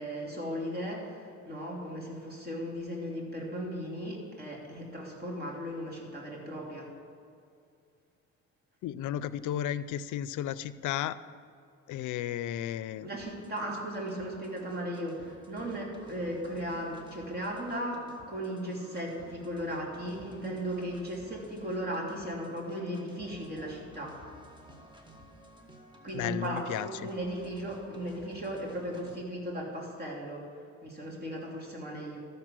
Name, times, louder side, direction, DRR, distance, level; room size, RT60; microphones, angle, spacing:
voice 1, 0.0-6.9 13.0-24.2 26.0-30.5 30.8-32.2, equal, 30° right, -2 dB, 3.2 m, -36 dB
voice 2, 8.8-11.2 11.9-13.1 26.1-26.9, left 11 dB, 80° left, 15 dB, 0.5 m, -33 dB
sound 1, 13.2-29.2, right 1 dB, 15° right, 1.6 m, -53 dB
13.5 x 6.9 x 6.1 m, 2.4 s
cardioid pair, 90°, 30 cm